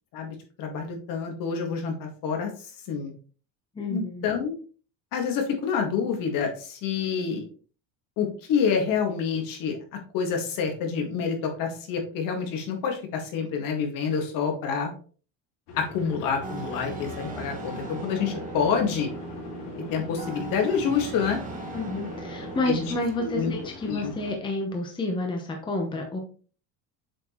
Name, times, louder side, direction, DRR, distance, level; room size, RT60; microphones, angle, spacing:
voice 1, 0.1-2.5 2.9-3.1 3.9-4.5 5.1-7.4 8.2-9.7 10.1-14.9 15.7-19.1 19.9-21.4 22.7-22.8 23.2-23.5 23.9-24.1, left 6 dB, 60° left, 3 dB, 1.9 m, -27 dB
voice 2, 3.7-4.3 21.7-26.2, left 2 dB, 10° left, 2 dB, 0.9 m, -30 dB
sound 1, 15.7-24.3, left 4 dB, 80° left, 2.2 m, -42 dB
sound 2, 16.4-23.0, right 3 dB, 20° right, 1.2 m, -38 dB
7.4 x 4.5 x 3.0 m, 0.39 s
cardioid pair, 165°, 38 cm